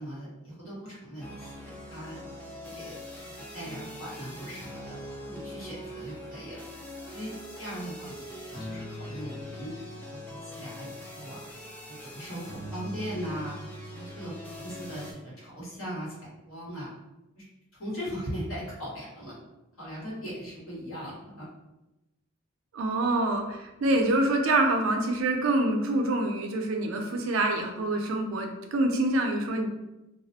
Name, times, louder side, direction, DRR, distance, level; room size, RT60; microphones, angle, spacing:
voice 1, 0.0-2.2 2.6-2.9 3.3-5.0 5.3-6.7 7.1-7.3 7.6-9.7 10.1-11.4 11.9-13.6 13.9-16.2 16.5-16.9 17.3-17.4 17.8-19.4 19.8-21.5, equal, 80° left, -7 dB, 1.1 m, -39 dB
sound 1, 1.2-15.1, equal, 10° left, 0.3 m, -42 dB
voice 2, 22.7-29.7, right 2 dB, 75° right, 3 dB, 0.4 m, -26 dB
2.3 x 2.0 x 2.7 m, 0.96 s
head